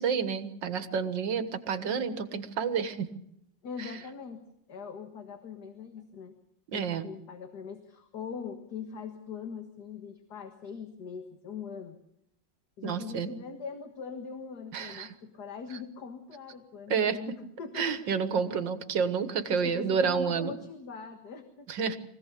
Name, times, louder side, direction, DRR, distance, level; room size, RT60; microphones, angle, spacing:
voice 1, 0.0-3.1 3.8-3.9 6.7-7.1 12.8-13.3 14.7-15.1 16.9-17.2 17.8-20.5 21.7-22.0, right 6 dB, 90° right, 11 dB, 2.1 m, -29 dB
voice 2, 3.6-4.4 4.7-6.4 6.7-12.0 12.8-18.1 19.5-21.7, left 5 dB, 65° left, 6 dB, 2.1 m, -41 dB
24.5 x 16.5 x 8.4 m, 0.79 s
omnidirectional pair, 1.9 m